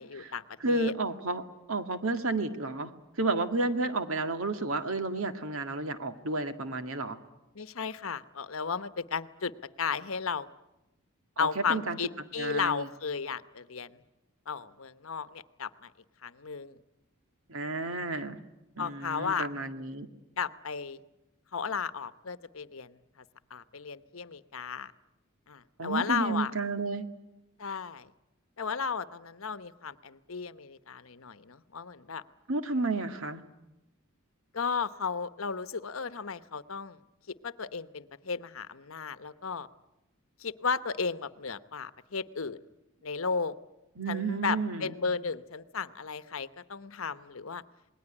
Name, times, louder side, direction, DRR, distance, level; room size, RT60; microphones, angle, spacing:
voice 1, 0.0-0.9 7.5-9.5 9.8-10.5 11.4-14.0 14.5-15.9 16.2-16.8 18.8-19.5 20.4-21.0 21.5-23.0 23.5-24.9 25.5-26.5 27.6-28.1 28.6-32.2 34.5-37.0 37.4-39.7 40.4-42.6 43.0-43.5 44.1-47.6, left 5 dB, 75° left, 14 dB, 1.0 m, -34 dB
voice 2, 0.6-1.4 1.7-2.9 3.2-7.2 11.4-12.0 12.4-12.9 17.5-18.4 18.8-20.1 25.8-27.1 32.5-33.4 44.0-45.0, right 3 dB, 75° right, 8 dB, 1.9 m, -31 dB
28.0 x 20.0 x 9.9 m, 0.94 s
head